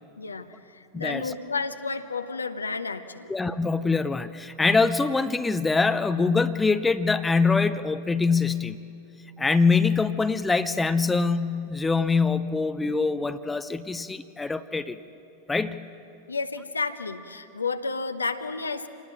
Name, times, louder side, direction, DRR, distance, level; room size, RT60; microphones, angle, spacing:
voice 1, 0.2-3.3 16.3-18.9, left 4 dB, 75° left, 9 dB, 1.0 m, -31 dB
voice 2, 0.9-1.3 3.3-8.8 9.4-15.0 15.5-15.8, left 4 dB, 10° left, 12 dB, 0.6 m, -24 dB
26.5 x 19.5 x 6.4 m, 2.6 s
figure-of-eight pair, 90°, 0 cm